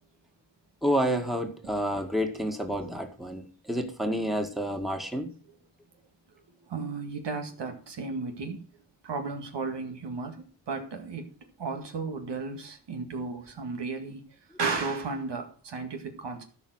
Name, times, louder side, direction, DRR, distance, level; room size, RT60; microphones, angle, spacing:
voice 1, 0.8-5.3, equal, ahead, 2.0 m, -29 dB
voice 2, 6.6-8.6 9.0-11.3 11.6-14.3 14.6-16.4, right 4 dB, 65° right, 2.1 m, -34 dB
12.5 x 4.9 x 6.4 m
cardioid pair, 65°, 45 cm